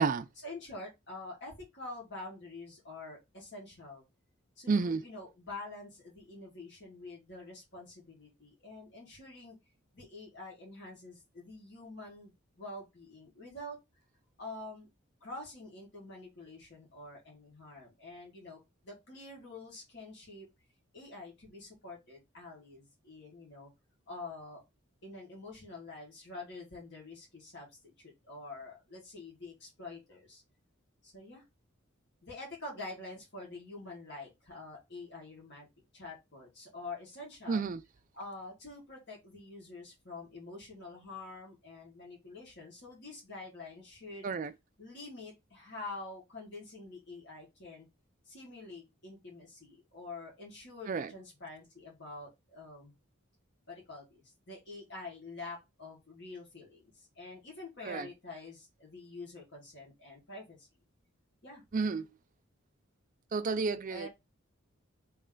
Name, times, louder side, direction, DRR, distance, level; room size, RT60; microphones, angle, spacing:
voice 1, 0.4-4.0 4.6-9.6 9.9-13.8 14.4-14.9 15.2-20.5 20.9-23.7 24.1-24.6 25.0-30.4 31.0-31.4 32.2-35.7 35.9-37.6 38.1-44.3 44.8-47.9 48.3-52.9 53.7-60.7 61.4-61.6 63.9-64.1, left 2 dB, 55° left, 1.9 m, -47 dB
voice 2, 4.7-5.0 37.5-37.8 44.2-44.5 50.9-51.1 57.8-58.1 61.7-62.1 63.3-64.1, right 4 dB, 40° right, 0.4 m, -30 dB
3.3 x 3.1 x 3.8 m
head